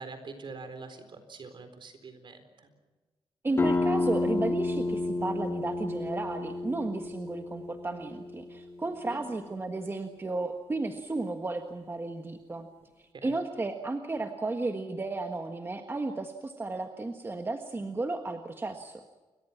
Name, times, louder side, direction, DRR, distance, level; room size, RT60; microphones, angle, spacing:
voice 1, 0.0-2.7 9.1-9.2 13.1-13.4, right 4 dB, 50° right, 9 dB, 4.2 m, -44 dB
voice 2, 3.4-12.7 13.2-19.0, right 2 dB, 20° right, 5 dB, 1.5 m, -33 dB
sound 1, 3.6-9.0, left 2 dB, 25° left, 2.2 m, -31 dB
29.5 x 23.5 x 5.9 m, 1.2 s
wide cardioid pair, 150°, 10 cm